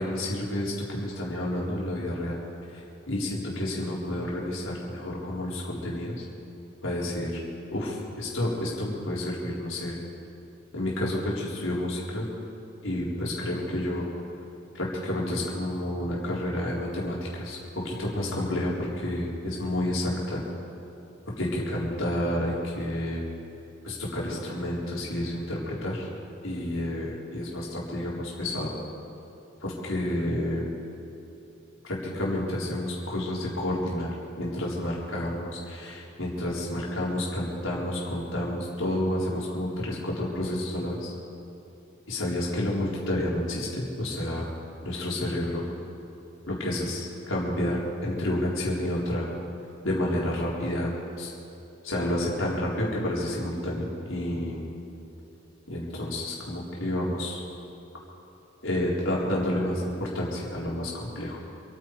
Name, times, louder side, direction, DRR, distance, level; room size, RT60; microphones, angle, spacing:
voice 1, 0.0-2.4 2.7-6.2 6.8-7.4 7.7-10.0 10.7-12.2 12.8-14.1 14.7-20.4 21.4-23.2 23.8-26.1 26.4-28.7 29.6-30.7 31.8-41.1 42.1-44.5 44.8-45.6 46.5-49.3 49.8-50.9 51.2-51.3 51.8-54.7 55.7-57.4 58.6-61.4, left 1 dB, 85° left, -4 dB, 4.2 m, -30 dB
28.0 x 9.5 x 4.9 m, 2.9 s
head